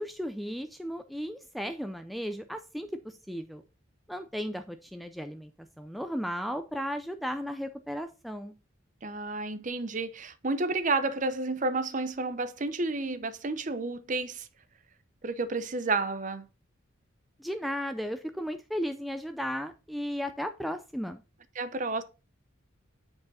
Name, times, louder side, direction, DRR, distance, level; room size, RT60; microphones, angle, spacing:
voice 1, 0.0-3.6 4.1-5.5 5.8-8.6 17.4-21.2, equal, ahead, 0.4 m, -35 dB
voice 2, 9.0-14.5 15.2-16.5 21.6-22.0, right 3 dB, 40° right, 0.7 m, -31 dB
8.8 x 4.8 x 4.1 m
head